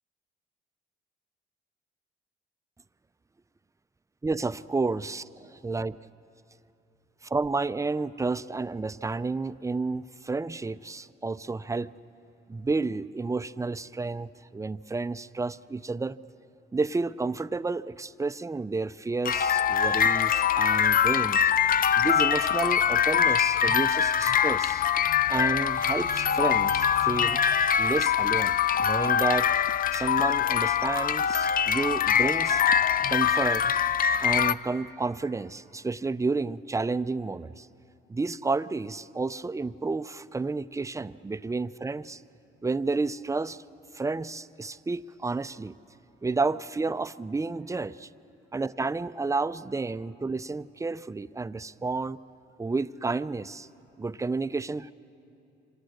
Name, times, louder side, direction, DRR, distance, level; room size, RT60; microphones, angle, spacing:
voice 1, 4.2-5.2 5.6-6.0 7.3-11.9 12.5-16.2 16.7-21.5 22.0-24.8 25.3-27.4 27.8-29.5 29.9-32.6 33.1-33.7 34.2-37.7 38.1-42.2 42.6-43.6 43.9-45.8 46.2-48.1 48.5-52.2 52.6-53.7 54.0-54.9, right 3 dB, 15° right, 14 dB, 0.5 m, -31 dB
sound 1, 19.2-34.5, left 8 dB, 45° left, 0.5 m, -23 dB
27.0 x 25.5 x 6.5 m, 2.8 s
cardioid pair, 90°, 20 cm